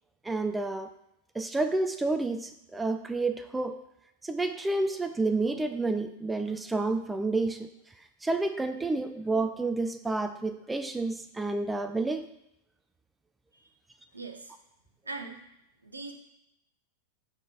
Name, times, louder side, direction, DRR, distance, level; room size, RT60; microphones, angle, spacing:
voice 1, 0.2-0.9 1.3-3.8 4.2-7.7 8.2-12.3, right 3 dB, 10° right, 8 dB, 0.3 m, -30 dB
voice 2, 14.1-14.5 15.0-15.4 15.8-16.1, right 3 dB, 80° right, 5 dB, 0.7 m, -40 dB
4.9 x 4.0 x 4.7 m, 0.83 s
figure-of-eight pair, 90°, 0 cm